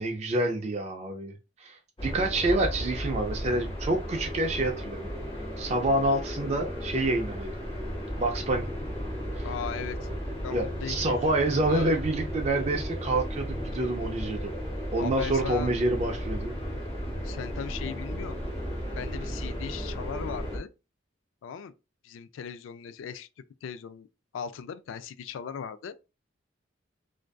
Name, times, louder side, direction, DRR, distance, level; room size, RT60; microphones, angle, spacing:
voice 1, 0.0-5.1 5.6-7.6 8.2-8.7 9.4-9.5 10.5-14.5 14.9-16.5, right 2 dB, 35° right, 0.3 m, -28 dB
sound 1, 2.0-20.6, equal, 25° left, 1.0 m, -34 dB
voice 2, 9.4-10.1 10.4-11.2 11.6-11.9 15.0-15.7 17.2-18.4 19.0-20.7 21.4-21.7 22.0-23.3 23.6-24.1 24.3-26.0, left 7 dB, 85° left, 0.3 m, -38 dB
2.5 x 2.3 x 2.2 m
head